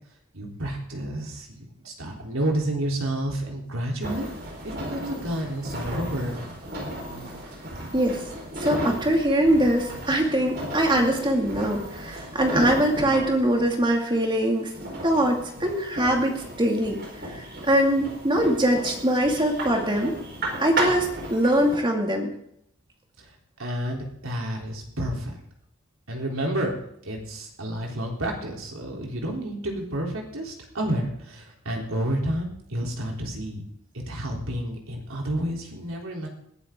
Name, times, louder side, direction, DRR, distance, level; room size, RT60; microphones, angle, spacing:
voice 1, 0.3-4.3 4.6-6.5 23.2-23.3 23.6-25.3 26.1-33.6 33.9-36.3, right 1 dB, 70° right, 0 dB, 3.5 m, -30 dB
sound 1, 4.0-21.8, right 1 dB, 50° right, 4.3 m, -34 dB
voice 2, 8.6-14.7 15.0-17.0 17.3-20.1 20.6-22.3, right 1 dB, 20° right, 2 dB, 2.3 m, -22 dB
20.0 x 11.5 x 3.8 m, 0.72 s
head